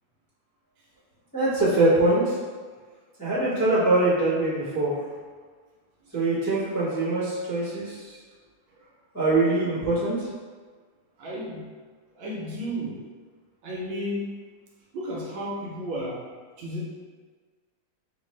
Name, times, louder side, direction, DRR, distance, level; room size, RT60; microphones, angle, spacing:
voice 1, 1.3-2.3 3.2-4.9 6.1-8.2 9.1-10.3, right 2 dB, 15° left, -13 dB, 0.9 m, -23 dB
voice 2, 11.2-11.7 12.1-13.0 13.6-14.4 14.9-16.2 16.6-16.8, equal, 70° right, -4 dB, 1.3 m, -32 dB
5.3 x 2.5 x 3.1 m, 1.5 s
omnidirectional pair, 2.4 m